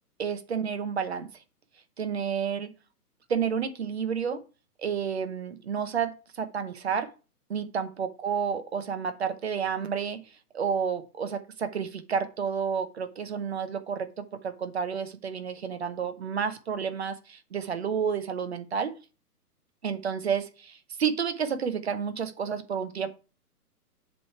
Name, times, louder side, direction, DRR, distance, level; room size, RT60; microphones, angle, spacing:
voice 1, 0.2-1.3 2.0-2.7 3.3-4.4 4.8-7.1 7.5-10.2 10.5-19.0 19.8-23.1, right 7 dB, 40° right, 0.9 m, -30 dB
7.5 x 3.3 x 5.7 m
hypercardioid pair, 170°, 47 cm